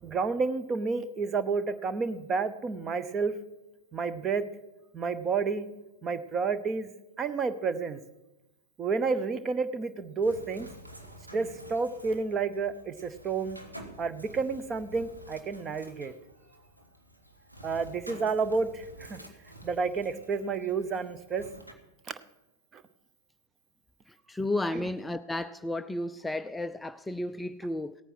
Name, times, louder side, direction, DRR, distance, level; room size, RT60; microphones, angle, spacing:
voice 1, 0.0-3.3 3.9-4.4 4.9-5.7 6.0-6.9 7.2-8.0 8.8-10.7 11.3-13.6 14.0-16.1 17.6-19.2 19.6-21.5 22.7-22.8 24.7-24.9, right 4 dB, 25° right, 0.8 m, -30 dB
Bird, 10.2-21.7, equal, 85° right, 1.5 m, -50 dB
voice 2, 24.3-28.0, left 1 dB, 5° left, 0.3 m, -33 dB
17.0 x 9.0 x 6.1 m
figure-of-eight pair, 90°, 0 cm